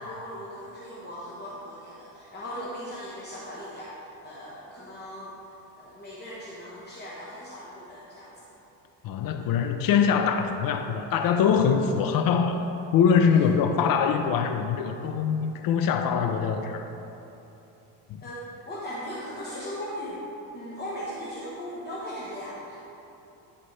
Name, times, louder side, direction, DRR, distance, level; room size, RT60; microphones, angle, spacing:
voice 1, 0.0-5.3 5.8-8.5 13.2-13.5 18.2-20.2 20.5-22.8, equal, 20° left, -7 dB, 1.2 m, -38 dB
voice 2, 9.0-12.6 12.9-16.8 18.1-18.2, left 7 dB, 50° left, 6 dB, 0.6 m, -23 dB
11.0 x 4.1 x 3.3 m, 2.9 s
supercardioid pair, 85°, 44 cm